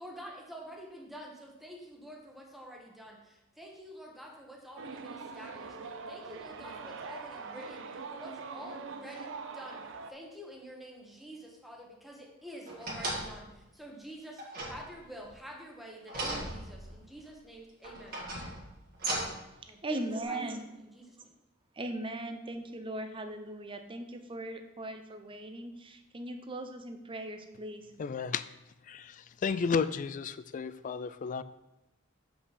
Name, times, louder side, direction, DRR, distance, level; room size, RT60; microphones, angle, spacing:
voice 1, 0.0-9.8 10.1-18.2 19.7-20.6 20.9-21.3, equal, ahead, -1 dB, 1.2 m, -48 dB
sound 1, 4.8-10.1, right 4 dB, 65° right, 0.6 m, -43 dB
sound 2, 12.7-13.5 14.4-15.3 16.1-17.1 17.8-19.5 20.2-20.3, right 1 dB, 50° right, 2.0 m, -37 dB
voice 2, 19.6-20.6 21.7-27.9, right 1 dB, 25° right, 6 dB, 0.7 m, -39 dB
voice 3, 28.0-28.4 28.9-29.1 29.4-31.4, left 5 dB, 40° left, 14 dB, 0.3 m, -32 dB
7.3 x 5.6 x 4.2 m, 0.93 s
head